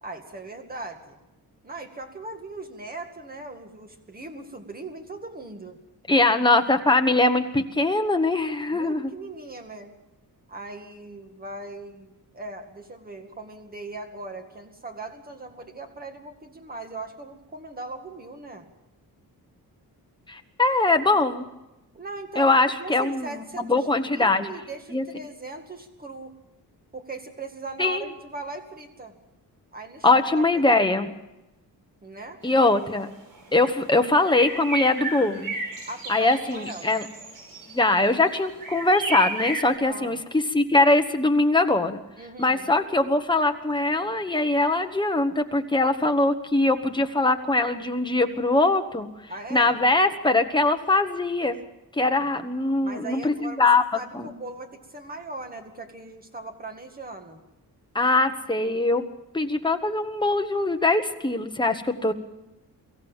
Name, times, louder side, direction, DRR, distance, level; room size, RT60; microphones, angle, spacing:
voice 1, 0.0-1.2 1.6-5.8 8.7-9.9 10.5-18.7 21.9-26.3 26.9-29.1 29.7-30.1 30.4-30.7 32.0-32.4 35.9-37.0 39.9-40.3 42.2-42.7 49.3-49.8 52.2-52.3 52.8-53.7 53.9-57.4, right 2 dB, 25° right, 5 dB, 2.1 m, -39 dB
voice 2, 6.1-9.1 20.3-21.5 22.3-24.5 24.9-25.0 27.8-28.0 30.0-31.1 32.4-33.1 33.5-35.5 36.1-37.0 37.7-42.0 42.4-49.1 49.5-51.6 51.9-53.8 54.1-54.3 57.9-59.0 59.3-62.1, left 2 dB, 10° left, 5 dB, 1.2 m, -22 dB
sound 1, 32.5-32.6 33.0-33.1 33.3-33.7 34.3-39.7, right 2 dB, 65° right, 5.3 m, -33 dB
24.0 x 15.0 x 7.3 m, 0.97 s
wide cardioid pair, 175°, 37 cm